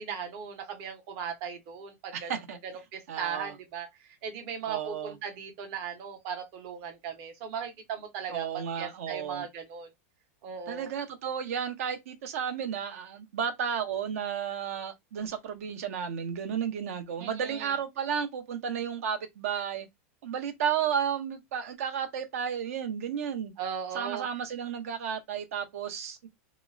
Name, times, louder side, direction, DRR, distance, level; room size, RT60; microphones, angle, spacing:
voice 1, 0.0-2.3 2.9-3.9 4.2-8.5 8.8-9.9 10.4-10.9 17.2-17.8 23.6-24.3, right 7 dB, 35° right, 0.7 m, -37 dB
voice 2, 2.1-2.6 3.1-3.6 4.7-5.2 8.3-9.5 10.7-19.9 20.2-23.5 23.9-26.3, right 8 dB, 70° right, 0.7 m, -33 dB
2.9 x 2.0 x 2.5 m
supercardioid pair, 165°, 8 cm